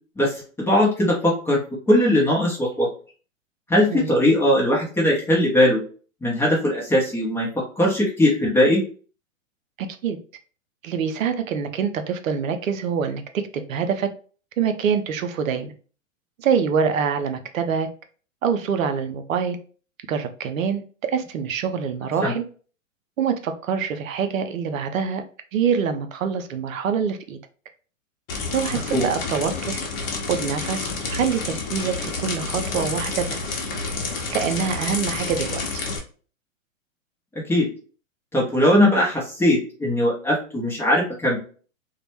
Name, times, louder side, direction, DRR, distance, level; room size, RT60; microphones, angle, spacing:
voice 1, 0.2-1.6 1.9-2.9 3.7-5.8 6.2-8.8 22.2-22.4 28.9-29.0 37.5-37.7 38.3-41.4, left 1 dB, 5° left, -4 dB, 0.6 m, -20 dB
voice 2, 9.8-10.2 10.8-14.1 14.6-15.7 16.4-17.9 18.4-19.6 20.1-22.4 23.2-25.2 25.5-27.4 28.5-29.8 30.3-33.4 34.3-35.9, right 7 dB, 75° right, 8 dB, 0.5 m, -25 dB
sound 1, 28.3-36.0, left 4 dB, 45° left, 0.8 m, -29 dB
2.2 x 2.0 x 2.9 m, 0.39 s
hypercardioid pair, 110°, 40 cm